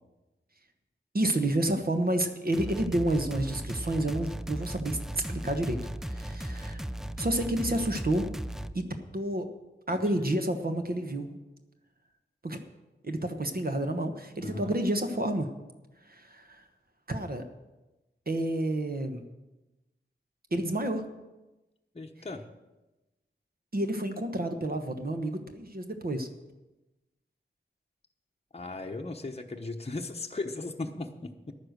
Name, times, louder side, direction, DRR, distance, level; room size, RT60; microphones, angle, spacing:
voice 1, 1.1-6.9 7.2-8.3 8.7-9.5 9.9-11.4 12.4-12.6 13.0-15.5 16.0-16.6 17.1-17.4 18.3-19.2 20.5-21.0 23.7-26.3, right 1 dB, 45° right, 6 dB, 1.1 m, -30 dB
sound 1, 2.5-8.7, right 1 dB, ahead, 0.4 m, -36 dB
voice 2, 21.9-22.5 28.5-31.5, left 2 dB, 30° left, 3 dB, 0.9 m, -37 dB
11.0 x 9.8 x 6.6 m, 1.1 s
wide cardioid pair, 85°, 21 cm